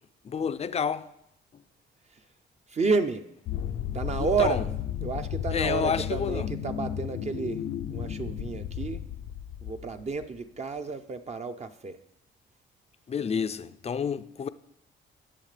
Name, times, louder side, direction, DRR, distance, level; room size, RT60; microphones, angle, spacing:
voice 1, 0.2-1.1 4.2-4.6 5.5-6.5 13.1-14.5, left 7 dB, 30° left, 0.5 m, -29 dB
voice 2, 2.7-3.2 3.9-4.6 5.0-7.6 7.9-9.0 9.6-12.0, right 4 dB, 35° right, 0.6 m, -30 dB
sound 1, 3.5-10.3, left 9 dB, 80° left, 0.6 m, -34 dB
19.0 x 6.6 x 3.3 m
cardioid pair, 90°, 20 cm